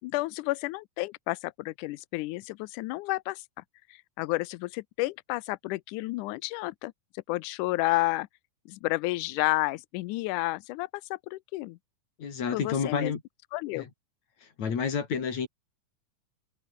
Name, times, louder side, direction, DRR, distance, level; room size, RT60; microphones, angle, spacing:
voice 1, 0.0-3.5 3.9-8.3 8.7-11.8 12.5-13.1 13.5-13.9, left 20 dB, 80° left, 1.9 m, -31 dB
voice 2, 12.2-13.2 13.7-13.9 14.4-15.5, left 6 dB, 55° left, 4.5 m, -30 dB
omnidirectional pair, 4.0 m